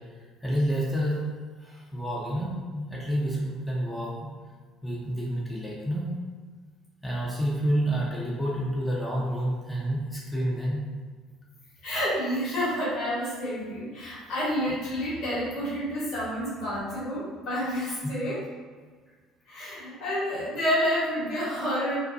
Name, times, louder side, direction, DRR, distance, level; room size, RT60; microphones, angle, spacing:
voice 1, 0.4-1.2 1.6-4.3 4.8-6.1 7.0-10.8 18.0-18.1, equal, 5° left, -5 dB, 0.8 m, -29 dB
voice 2, 11.8-18.3 19.5-22.0, equal, 50° left, -9 dB, 1.2 m, -29 dB
2.6 x 2.1 x 2.6 m, 1.5 s
hypercardioid pair, 60°, 0 cm